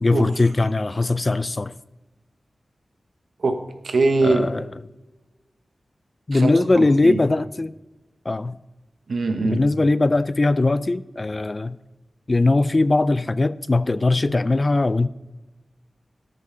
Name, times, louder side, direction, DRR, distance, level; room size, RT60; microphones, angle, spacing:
voice 1, 0.0-1.7 4.2-4.8 6.3-7.7 8.3-8.6 9.4-11.8 12.3-15.1, left 2 dB, 35° left, 0.3 m, -20 dB
voice 2, 3.4-4.5 6.3-6.5 6.8-7.2 9.1-9.6, right 3 dB, 75° right, 1.0 m, -22 dB
13.5 x 6.4 x 3.8 m
wide cardioid pair, 110°, 0 cm